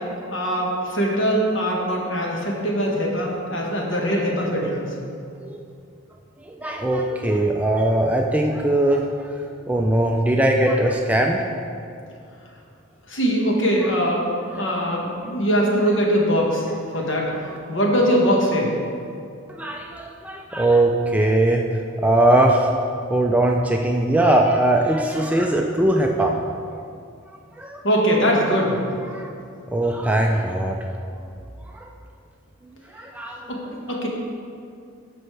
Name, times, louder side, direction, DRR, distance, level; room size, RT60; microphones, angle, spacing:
voice 1, 0.3-4.9 13.1-14.2 14.6-16.6 16.9-17.3 17.7-18.7 27.8-28.8 33.5-33.6 33.9-34.1, equal, 60° left, -2 dB, 1.5 m, -21 dB
voice 2, 6.5-9.1 9.7-11.4 14.5-14.6 16.9-17.0 17.5-17.6 19.6-21.6 22.0-22.7 23.1-26.4 27.6-27.8 29.1-29.3 29.7-30.8 31.7-31.9 32.9-33.4, right 1 dB, 5° right, 1 dB, 0.3 m, -20 dB
14.0 x 5.3 x 3.3 m, 2.4 s
head